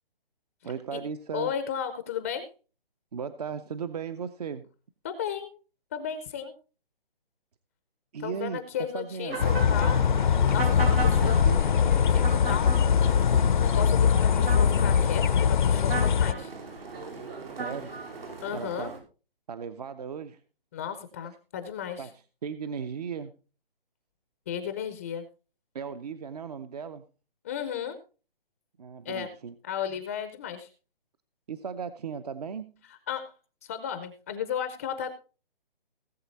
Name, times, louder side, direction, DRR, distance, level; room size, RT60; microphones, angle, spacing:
voice 1, 0.6-1.5 3.1-4.7 8.1-9.4 11.2-11.7 17.6-17.9 18.5-19.0 19.5-20.4 22.0-22.1 22.4-23.3 25.7-27.0 28.8-29.5 29.9-30.0 31.5-32.7, right 6 dB, 45° right, 12 dB, 0.7 m, -36 dB
voice 2, 1.3-2.5 5.0-5.5 5.9-6.5 8.2-10.0 10.5-11.5 12.1-16.5 18.4-18.9 20.7-22.1 24.5-25.2 27.4-28.0 29.0-29.3 29.6-30.7 33.1-33.3 33.6-35.2, left 8 dB, 15° left, 10 dB, 0.6 m, -34 dB
sound 1, 9.3-19.0, right 4 dB, 85° right, 5.1 m, -37 dB
sound 2, 9.4-16.3, left 7 dB, 55° left, 0.6 m, -22 dB
17.5 x 7.4 x 4.1 m, 0.35 s
hypercardioid pair, 155°, 29 cm